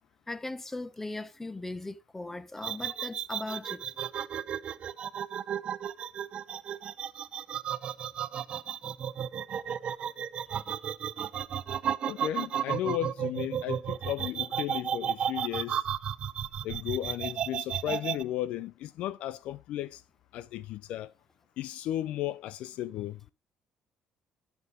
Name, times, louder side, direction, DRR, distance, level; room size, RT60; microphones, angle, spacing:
voice 1, 0.3-3.8, left 2 dB, 15° left, 1.1 m, -38 dB
sound 1, 2.6-18.2, right 9 dB, 55° right, 0.7 m, -33 dB
voice 2, 12.1-15.8 16.6-20.0 20.3-21.1 21.6-23.2, left 13 dB, 75° left, 0.4 m, -34 dB
11.0 x 6.9 x 3.7 m
supercardioid pair, 75°, 2 cm